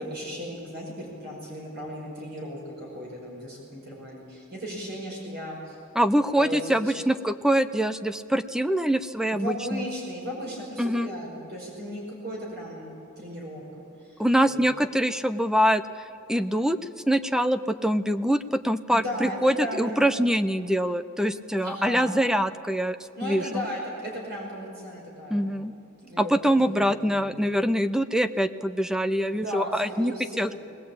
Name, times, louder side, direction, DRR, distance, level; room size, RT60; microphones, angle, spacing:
voice 1, 0.0-5.8 6.3-7.0 9.3-13.6 14.0-14.6 18.9-20.2 21.6-22.2 23.2-25.5 26.0-26.3 26.6-27.6 29.3-30.5, equal, 50° right, -3 dB, 5.4 m, -36 dB
voice 2, 6.0-9.9 10.8-11.1 14.2-15.8 16.3-23.0 23.2-23.6 25.3-25.7 26.2-30.5, equal, 5° right, 11 dB, 0.5 m, -24 dB
20.5 x 20.0 x 8.7 m, 2.5 s
head